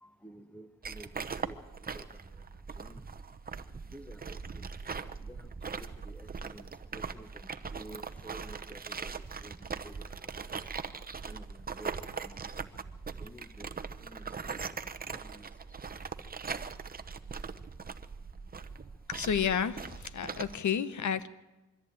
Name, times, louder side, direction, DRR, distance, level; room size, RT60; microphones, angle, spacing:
voice 1, 0.0-1.6 1.9-2.0 2.8-3.0 3.9-4.7 5.2-9.1 9.4-9.6 9.8-10.3 11.2-12.9 13.2-14.3 15.1-15.5, right 1 dB, 5° left, 11 dB, 1.3 m, -51 dB
sound 1, 0.8-20.5, right 5 dB, 25° right, 0.9 m, -41 dB
voice 2, 19.1-21.3, left 8 dB, 60° left, 14 dB, 1.1 m, -31 dB
23.0 x 14.0 x 9.0 m, 1.0 s
cardioid pair, 90°, 34 cm